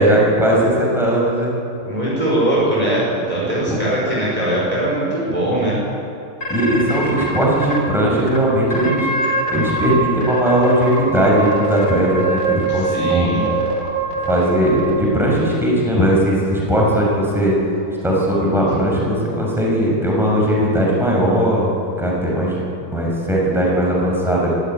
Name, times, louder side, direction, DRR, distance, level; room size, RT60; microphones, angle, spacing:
voice 1, 0.0-1.5 3.7-3.8 6.5-9.1 9.5-13.3 14.2-17.5 18.0-21.7 22.0-24.5, right 1 dB, ahead, -4 dB, 6.4 m, -18 dB
voice 2, 1.8-5.8 12.7-13.4, right 1 dB, 20° right, -6 dB, 5.5 m, -21 dB
sound 1, 6.4-7.8 8.3-8.4 8.7-9.9 10.2-15.4, right 2 dB, 55° left, 4.5 m, -23 dB
24.0 x 15.0 x 9.3 m, 2.7 s
omnidirectional pair, 2.0 m